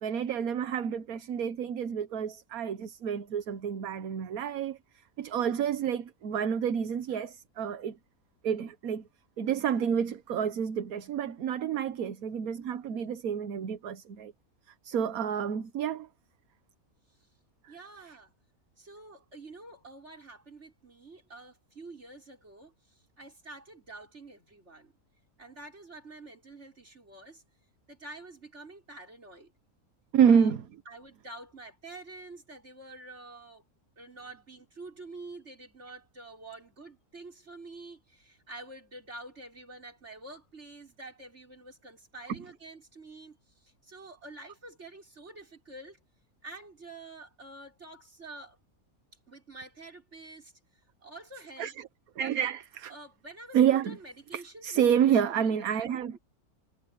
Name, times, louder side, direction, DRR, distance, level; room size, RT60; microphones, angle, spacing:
voice 1, 0.0-4.8 5.2-8.0 8.4-9.0 9.4-14.3 14.8-16.1 17.6-17.7 30.1-30.6 51.6-51.7 52.2-52.9 53.5-54.0 54.3-56.1, right 8 dB, 75° right, 1.4 m, -28 dB
voice 2, 17.7-18.3 18.8-24.9 25.4-27.4 27.9-29.5 30.3-30.5 30.9-33.6 34.0-46.0 46.4-48.6 49.3-50.5 51.0-51.7 52.2-52.3 52.9-55.8, right 2 dB, 50° right, 5.9 m, -48 dB
omnidirectional pair, 1.5 m